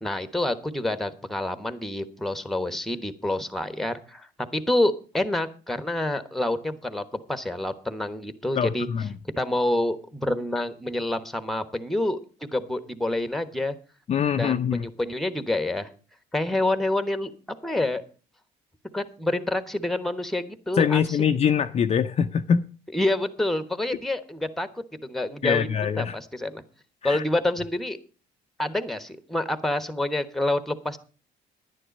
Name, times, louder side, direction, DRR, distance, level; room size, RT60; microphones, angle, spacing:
voice 1, 0.0-4.3 4.5-7.0 7.3-8.9 9.4-13.7 14.4-15.9 16.3-17.3 17.6-18.0 18.9-21.0 22.9-24.7 25.0-25.7 26.0-26.6 27.0-28.0 28.6-31.0, left 1 dB, ahead, 1.2 m, -27 dB
voice 2, 8.5-9.1 14.1-14.9 20.7-22.6 25.4-26.2 27.0-27.2, left 7 dB, 40° left, 0.6 m, -23 dB
11.0 x 10.0 x 5.3 m
cardioid pair, 110°, 17 cm